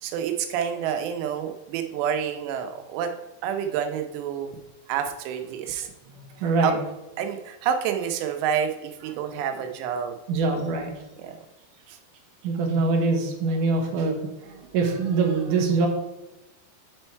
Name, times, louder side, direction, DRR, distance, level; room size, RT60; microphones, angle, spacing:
voice 1, 0.0-3.1 3.4-4.6 4.9-5.9 6.6-6.7 7.2-10.2 11.2-11.4, right 8 dB, 90° right, 6 dB, 2.9 m, -28 dB
voice 2, 6.4-6.8 10.3-10.9 12.4-14.2 14.4-15.9, right 3 dB, 75° right, 2 dB, 2.0 m, -23 dB
8.6 x 4.4 x 4.5 m, 0.99 s
omnidirectional pair, 4.9 m